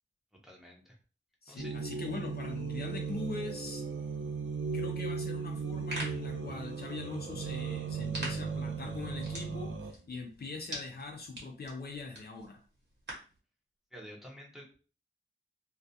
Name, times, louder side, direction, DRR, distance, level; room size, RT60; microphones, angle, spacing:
voice 1, 0.4-1.0 1.5-1.7 13.9-14.8, equal, ahead, -2 dB, 0.7 m, -49 dB
voice 2, 1.4-3.8 4.7-12.6, left 3 dB, 55° left, 2 dB, 0.5 m, -42 dB
sound 1, 1.6-9.9, right 5 dB, 80° right, 0.4 m, -37 dB
sound 2, 5.2-11.6 11.9-12.0, right 2 dB, 35° right, 1.0 m, -56 dB
sound 3, 5.6-13.4, right 1 dB, 60° right, 1.0 m, -46 dB
2.3 x 2.3 x 2.6 m, 0.37 s
wide cardioid pair, 105°, 20 cm